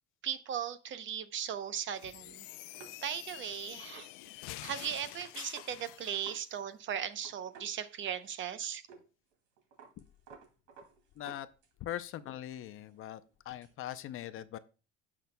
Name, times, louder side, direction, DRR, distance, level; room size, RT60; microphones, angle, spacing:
voice 1, 0.2-2.5 3.0-4.1 4.6-8.8, right 9 dB, 40° right, 12 dB, 0.7 m, -37 dB
sound 1, 1.9-6.4, left 17 dB, 85° left, 0.6 m, -47 dB
sound 2, 2.7-6.5 6.7-6.8 7.1-8.5 8.9-9.1 9.3-11.9 12.3-13.7, right 6 dB, 75° right, 2.5 m, -56 dB
voice 2, 11.2-11.5 11.8-13.2 13.5-14.6, left 12 dB, 45° left, 13 dB, 0.5 m, -41 dB
16.0 x 6.0 x 2.2 m, 0.33 s
cardioid pair, 150°, 30 cm